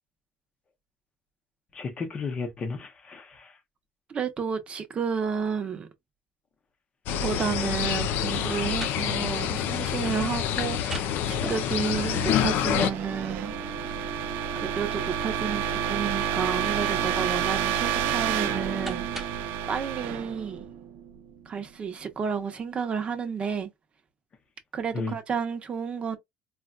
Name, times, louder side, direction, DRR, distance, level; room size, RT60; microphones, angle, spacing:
voice 1, 1.7-3.5 24.9-25.2, left 4 dB, 35° left, 0.7 m, -33 dB
voice 2, 4.1-5.9 7.2-13.6 14.5-19.1 19.3-20.7 21.5-23.7 24.7-26.2, right 6 dB, 35° right, 0.8 m, -31 dB
sound 1, 7.1-12.9, left 9 dB, 70° left, 0.4 m, -27 dB
sound 2, 11.3-19.6, equal, 5° right, 0.9 m, -42 dB
sound 3, 11.6-21.4, right 9 dB, 75° right, 0.5 m, -30 dB
4.0 x 2.3 x 2.3 m
cardioid pair, 130°, 3 cm